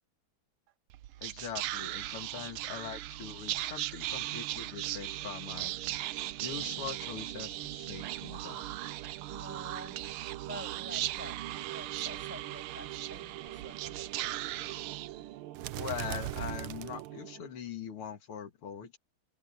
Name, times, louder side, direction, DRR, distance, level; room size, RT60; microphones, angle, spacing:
Whispering, 0.9-17.5, right 15 dB, 90° right, 1.6 m, -38 dB
voice 1, 1.2-5.8 6.4-8.7 15.7-19.0, left 7 dB, 85° left, 2.7 m, -42 dB
voice 2, 9.3-10.0 10.5-11.4 11.6-14.6, equal, 5° right, 6.4 m, -48 dB
omnidirectional pair, 2.4 m